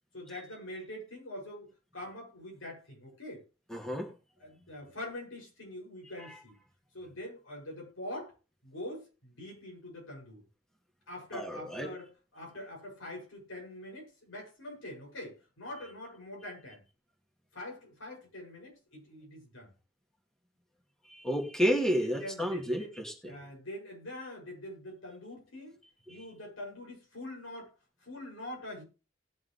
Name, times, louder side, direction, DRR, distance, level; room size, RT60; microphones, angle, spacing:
voice 1, 0.1-3.4 4.4-6.6 6.9-8.3 8.6-10.4 11.1-16.8 17.5-19.7 22.0-22.9 23.2-25.8 26.1-27.7 28.0-28.8, left 1 dB, 80° left, 7.1 m, -44 dB
voice 2, 3.7-4.1 6.2-6.4 11.3-11.9 21.0-23.1 26.1-26.2, equal, 5° left, 2.5 m, -31 dB
19.0 x 7.3 x 3.4 m
head